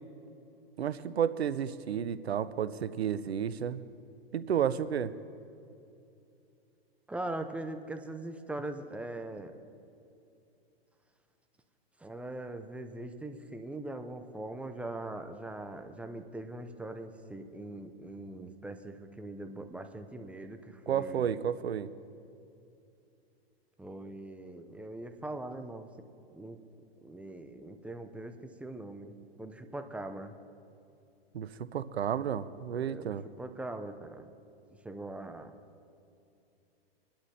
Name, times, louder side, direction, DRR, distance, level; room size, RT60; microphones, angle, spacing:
voice 1, 0.8-3.8 4.3-5.1 20.9-21.9 31.3-33.3, right 8 dB, 85° right, 15 dB, 0.6 m, -31 dB
voice 2, 7.1-9.5 12.0-21.3 23.8-25.9 26.3-26.6 27.0-30.3 32.8-34.3 34.8-35.5, right 2 dB, 5° right, 7 dB, 0.6 m, -41 dB
24.5 x 11.5 x 2.8 m, 2.6 s
hypercardioid pair, 115°, 31 cm